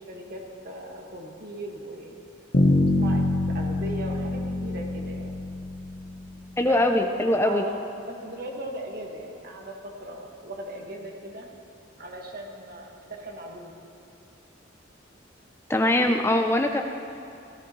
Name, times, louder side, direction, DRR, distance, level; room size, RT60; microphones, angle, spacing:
voice 1, 0.1-2.1 2.7-3.2 3.5-5.4 6.6-7.1 7.4-7.8 8.1-11.5 12.0-13.7 15.9-16.2 16.6-16.8, right 1 dB, 50° right, 0 dB, 1.6 m, -38 dB
Bass guitar, 2.5-6.5, left 2 dB, 65° left, 1.1 m, -25 dB
voice 2, 6.6-7.6 15.7-16.8, left 1 dB, 15° left, 5 dB, 0.4 m, -22 dB
16.0 x 14.0 x 3.1 m, 2.7 s
head